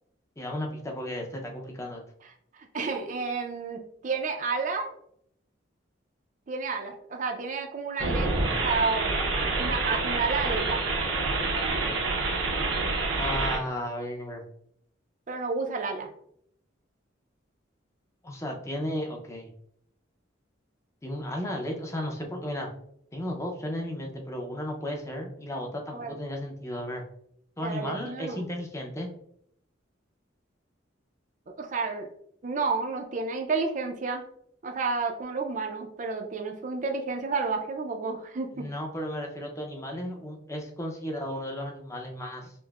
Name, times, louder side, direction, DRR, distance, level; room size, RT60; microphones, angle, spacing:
voice 1, 0.4-2.0 13.0-14.4 18.2-19.5 21.0-22.7 23.1-27.0 27.6-29.1 38.5-42.5, left 1 dB, 15° left, 1 dB, 0.5 m, -34 dB
voice 2, 2.7-4.9 6.5-9.2 9.5-10.8 15.3-16.1 25.9-26.1 27.6-28.4 31.6-32.1 32.4-34.2 34.6-38.7, right 4 dB, 40° right, 4 dB, 0.4 m, -31 dB
sound 1, 8.0-13.6, right 3 dB, 90° right, 0.7 m, -27 dB
5.2 x 2.0 x 2.3 m, 0.69 s
head